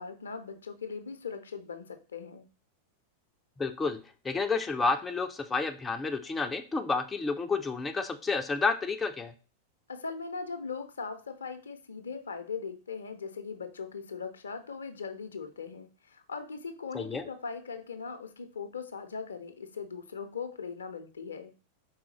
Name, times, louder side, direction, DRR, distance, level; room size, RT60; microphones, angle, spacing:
voice 1, 0.0-2.4 9.9-21.5, left 5 dB, 70° left, 9 dB, 0.5 m, -40 dB
voice 2, 3.6-4.0 4.2-9.3 16.9-17.2, left 4 dB, 15° left, 7 dB, 0.4 m, -30 dB
4.8 x 3.7 x 3.0 m, 0.35 s
figure-of-eight pair, 90°, 0 cm